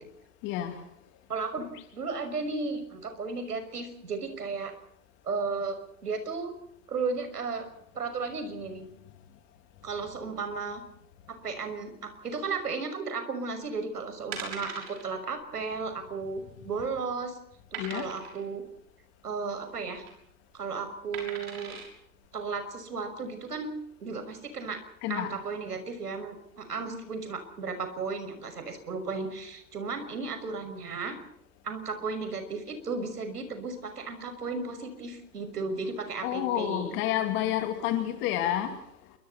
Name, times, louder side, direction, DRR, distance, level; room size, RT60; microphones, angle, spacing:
voice 1, 0.4-0.8 17.8-18.1 25.0-25.3 36.2-38.8, left 12 dB, 25° left, 2.5 m, -29 dB
voice 2, 1.3-4.7 5.2-6.5 6.9-7.7 7.9-8.8 9.8-10.8 11.3-17.4 17.7-18.6 19.2-20.0 20.5-21.8 22.3-23.7 24.0-24.8 25.1-31.2 31.6-37.0, right 4 dB, 65° right, 6.2 m, -34 dB
sound 1, 13.7-13.8 14.3-15.0 15.4-15.6 15.8-15.9 16.5-17.0 17.7-18.4 19.7-20.1 21.1-21.9 22.5-22.6, right 6 dB, 35° right, 6.6 m, -40 dB
29.0 x 24.0 x 4.3 m
figure-of-eight pair, 135°, 49 cm